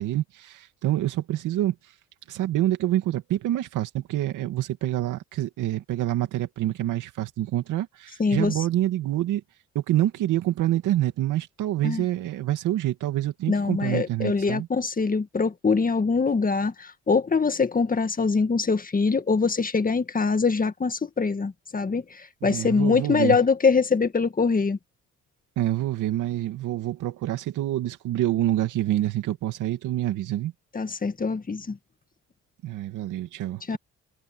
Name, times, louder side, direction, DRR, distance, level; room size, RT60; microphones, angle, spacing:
voice 1, 0.0-1.7 2.3-9.4 9.7-14.7 22.4-23.4 25.6-30.5 32.6-33.8, right 14 dB, 85° right, 2.5 m, -27 dB
voice 2, 8.2-8.5 11.8-12.0 13.5-24.8 30.7-31.8 33.7-33.8, left 4 dB, 30° left, 1.8 m, -23 dB
cardioid pair, 90°, 30 cm